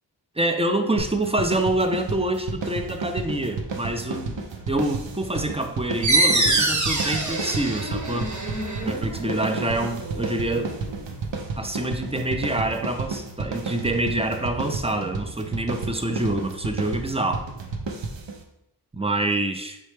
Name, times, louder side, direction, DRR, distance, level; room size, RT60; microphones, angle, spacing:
voice 1, 0.4-8.3 8.8-10.8 11.6-17.5 18.9-19.8, right 1 dB, 15° right, 5 dB, 0.3 m, -26 dB
sound 1, 1.0-18.4, right 4 dB, 80° right, 0.6 m, -32 dB
sound 2, 6.0-11.3, right 2 dB, 40° right, 0.8 m, -25 dB
4.2 x 3.2 x 3.3 m, 0.82 s
wide cardioid pair, 50°, 43 cm